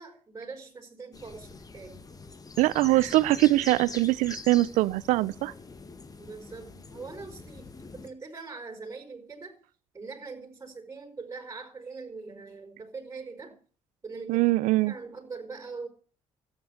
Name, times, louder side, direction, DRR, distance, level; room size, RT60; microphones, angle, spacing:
voice 1, 0.0-2.1 6.2-9.6 9.9-13.6 14.0-14.5 14.9-15.9, right 4 dB, 25° right, 5.1 m, -42 dB
sound 1, 1.1-8.1, left 3 dB, 30° left, 2.0 m, -44 dB
voice 2, 2.6-5.5 14.3-14.9, right 17 dB, 85° right, 0.7 m, -23 dB
13.5 x 9.2 x 7.9 m
cardioid pair, 80°, 12 cm